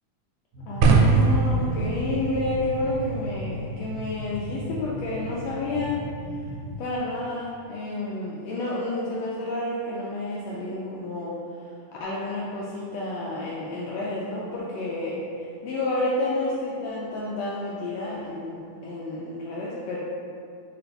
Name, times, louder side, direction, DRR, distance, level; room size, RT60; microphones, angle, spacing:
sound 1, 0.5-6.8, left 2 dB, 75° right, 2.2 m, -38 dB
voice 1, 0.6-6.0 6.8-11.4 12.0-15.2 15.6-20.0, left 2 dB, 80° left, -6 dB, 1.5 m, -30 dB
sound 2, 0.8-6.9, right 3 dB, 90° right, 2.1 m, -26 dB
4.7 x 2.5 x 4.4 m, 2.4 s
omnidirectional pair, 3.5 m